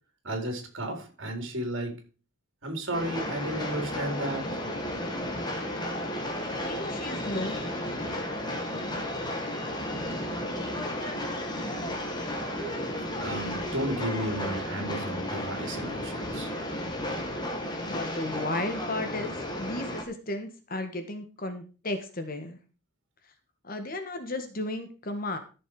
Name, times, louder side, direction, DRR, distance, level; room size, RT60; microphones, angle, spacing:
voice 1, 0.2-1.9 2.6-4.5 13.2-16.5, right 1 dB, 55° right, 4 dB, 4.1 m, -33 dB
Train, 2.9-20.0, left 1 dB, 20° left, 2.1 m, -33 dB
voice 2, 6.6-7.5 17.8-19.3 19.6-22.6 23.6-25.4, left 2 dB, 40° left, 7 dB, 1.7 m, -34 dB
14.5 x 7.0 x 4.9 m, 0.34 s
head